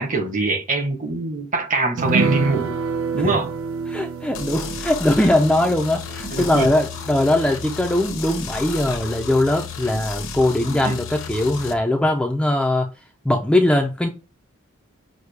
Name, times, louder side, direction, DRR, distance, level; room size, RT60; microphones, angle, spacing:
voice 1, 0.0-2.7 3.1-3.5 6.3-6.7 10.7-11.0, right 3 dB, 35° right, 0.8 m, -23 dB
sound 1, 2.0-8.8 9.1-9.2 9.5-9.7, right 5 dB, 75° right, 0.5 m, -29 dB
voice 2, 3.9-12.9 13.3-14.1, left 1 dB, 5° left, 0.4 m, -20 dB
sound 2, 4.3-11.7, left 5 dB, 65° left, 0.8 m, -33 dB
6.2 x 2.2 x 3.3 m
head